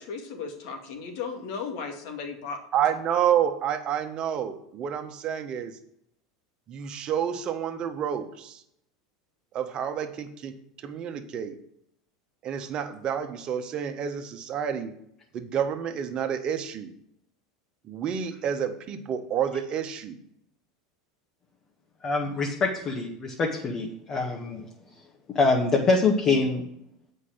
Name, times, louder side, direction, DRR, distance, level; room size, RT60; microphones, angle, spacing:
voice 1, 0.0-2.6, left 5 dB, 65° left, 3 dB, 2.3 m, -35 dB
voice 2, 2.7-5.8 6.7-8.6 9.5-11.6 12.4-14.9 15.3-16.9 17.9-20.2, right 8 dB, 40° right, 6 dB, 1.4 m, -29 dB
voice 3, 22.0-24.6 25.3-26.6, left 3 dB, 35° left, -1 dB, 1.9 m, -24 dB
8.2 x 5.6 x 7.9 m, 0.72 s
hypercardioid pair, 85°, 2 cm